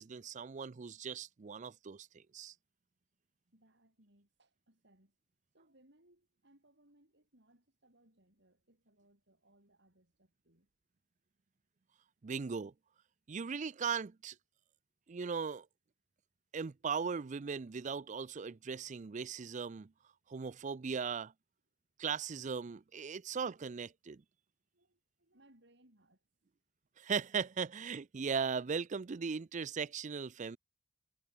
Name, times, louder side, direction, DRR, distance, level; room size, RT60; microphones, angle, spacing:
voice 1, 0.0-2.5 12.2-12.7 13.3-14.4 15.1-15.7 16.5-19.9 20.3-21.3 22.0-24.2 27.0-30.6, right 6 dB, 40° right, 0.4 m, -38 dB
voice 2, 3.5-5.1 5.5-10.7 24.7-26.5, right 1 dB, 60° right, 7.4 m, -68 dB
head